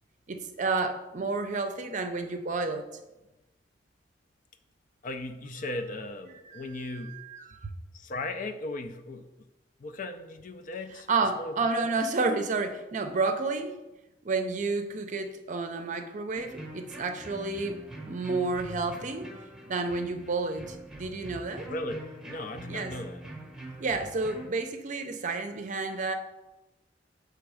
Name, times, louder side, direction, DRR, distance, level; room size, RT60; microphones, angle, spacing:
voice 1, 0.3-2.9 6.4-7.7 11.1-13.8 14.2-19.3 19.7-21.7 22.7-22.9 23.8-26.1, right 3 dB, 45° right, 7 dB, 0.6 m, -31 dB
voice 2, 5.0-7.1 7.9-9.3 9.8-11.1 11.4-12.0 21.7-23.2, left 2 dB, 50° left, 9 dB, 0.5 m, -37 dB
sound 1, 16.4-24.5, right 1 dB, 5° right, 0.9 m, -44 dB
7.1 x 3.4 x 4.8 m, 1.0 s
head